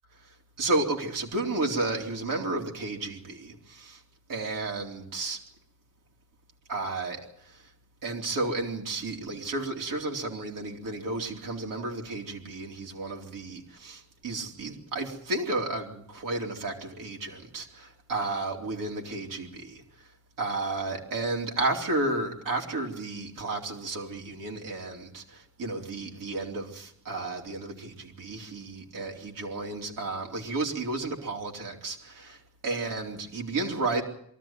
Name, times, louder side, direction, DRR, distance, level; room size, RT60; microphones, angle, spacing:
voice 1, 0.6-4.0 4.3-5.4 6.7-7.7 8.0-19.8 20.4-34.0, right 2 dB, 75° right, 4.0 m, -32 dB
23.5 x 14.0 x 9.1 m
wide cardioid pair, 175°, 33 cm